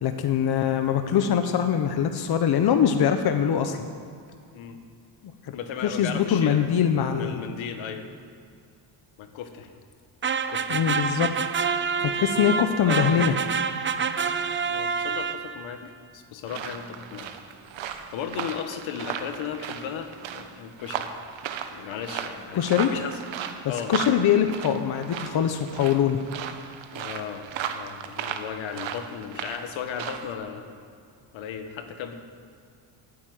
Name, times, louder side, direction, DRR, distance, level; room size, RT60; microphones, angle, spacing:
voice 1, 0.0-3.9 5.5-5.6 5.8-7.4 10.7-11.3 12.0-13.3 22.5-22.9 23.9-26.2, left 8 dB, 55° left, 7 dB, 1.0 m, -23 dB
voice 2, 5.5-6.6 6.9-8.0 9.2-9.7 10.5-10.8 12.8-13.4 14.6-15.8 16.1-17.3 18.1-21.1 21.6-23.2 23.6-23.9 26.9-30.7 31.3-32.2, left 8 dB, 80° left, 7 dB, 1.6 m, -36 dB
sound 1, 10.2-15.8, right 6 dB, 25° right, 0.7 m, -27 dB
sound 2, 16.5-30.3, right 8 dB, 75° right, 1.3 m, -36 dB
15.0 x 8.8 x 9.4 m, 2.2 s
cardioid pair, 115°, 46 cm